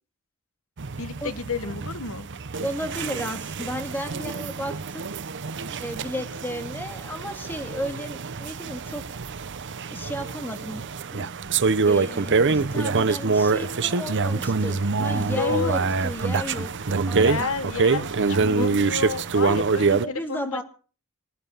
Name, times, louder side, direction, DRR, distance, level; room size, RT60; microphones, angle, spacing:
sound 1, 0.8-20.1, right 4 dB, 55° right, 0.8 m, -25 dB
voice 1, 1.0-2.3 15.4-15.9 17.2-20.6, left 4 dB, 70° left, 12 dB, 1.4 m, -31 dB
voice 2, 2.6-5.1 5.8-9.0 9.9-11.3 11.9-17.5 18.4-18.7 19.5-19.6 19.9-20.6, equal, 10° left, 6 dB, 2.3 m, -33 dB
20.0 x 11.5 x 5.6 m, 0.39 s
head